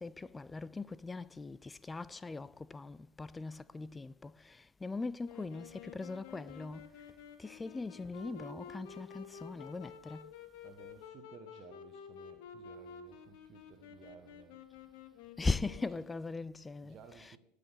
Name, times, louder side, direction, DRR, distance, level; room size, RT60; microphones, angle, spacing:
voice 1, 0.0-6.9 7.4-10.3 15.4-17.3, left 3 dB, 15° left, 0.4 m, -40 dB
Wind instrument woodwind instrument, 5.2-16.4, left 6 dB, 55° left, 1.3 m, -51 dB
voice 2, 10.6-14.6 15.6-16.1 16.8-17.4, right 7 dB, 35° right, 1.2 m, -57 dB
19.5 x 6.8 x 4.1 m
figure-of-eight pair, 75°, 0 cm